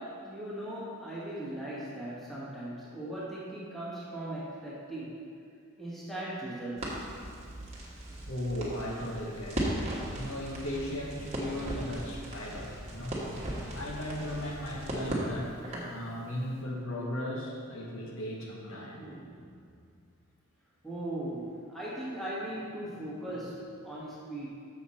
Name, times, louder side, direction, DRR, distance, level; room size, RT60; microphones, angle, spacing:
voice 1, 0.0-5.2 5.8-6.9 18.7-19.6 20.8-24.5, right 1 dB, ahead, -8 dB, 1.3 m, -39 dB
Crackle, 6.8-16.0, right 1 dB, 30° right, 1.2 m, -37 dB
voice 2, 8.3-9.9 10.1-13.2 13.7-15.5 15.8-19.0, left 1 dB, 65° left, -3 dB, 1.1 m, -37 dB
7.0 x 6.4 x 4.2 m, 2.3 s
head